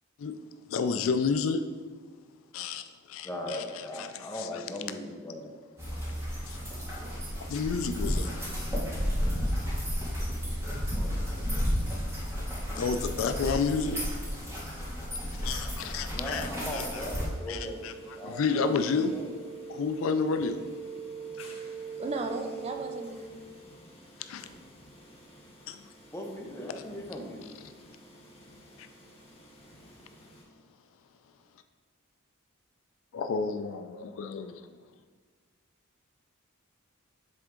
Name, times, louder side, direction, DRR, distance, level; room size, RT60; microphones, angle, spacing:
voice 1, 0.7-1.6 2.5-3.6 4.0-4.1 4.4-4.5 6.4-6.6 7.4-8.3 12.7-14.0 14.4-14.5 15.3-16.5 16.7-16.8 17.5-19.1 19.7-20.6 21.3-21.6 24.2-24.5 25.7-25.9 27.8-28.0 28.5-28.9 33.1-34.7, left 5 dB, 70° left, 9 dB, 0.3 m, -31 dB
voice 2, 3.2-5.6 10.8-11.2 16.1-17.9 18.2-19.3 26.1-27.5 28.7-28.8, left 1 dB, 10° left, 0 dB, 0.7 m, -39 dB
sound 1, 5.8-17.2, equal, 15° right, 1.7 m, -32 dB
sound 2, 16.5-30.4, right 5 dB, 30° left, 1.2 m, -45 dB
voice 3, 22.0-23.4, right 3 dB, 30° right, 5 dB, 0.4 m, -35 dB
7.7 x 3.5 x 3.7 m, 1.5 s
head